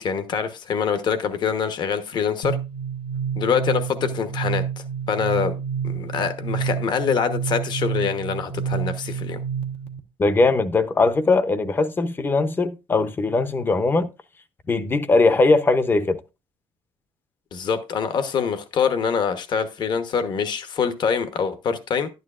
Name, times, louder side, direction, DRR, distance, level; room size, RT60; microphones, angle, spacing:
voice 1, 0.0-2.6 3.3-5.6 5.8-9.4 17.5-22.1, left 6 dB, 50° left, 1.0 m, -25 dB
sound 1, 2.4-10.0, right 7 dB, 75° left, 1.2 m, -29 dB
voice 2, 10.2-14.1 14.7-16.2, left 3 dB, 20° left, 0.7 m, -20 dB
11.5 x 9.4 x 2.5 m
cardioid pair, 165°, 10 cm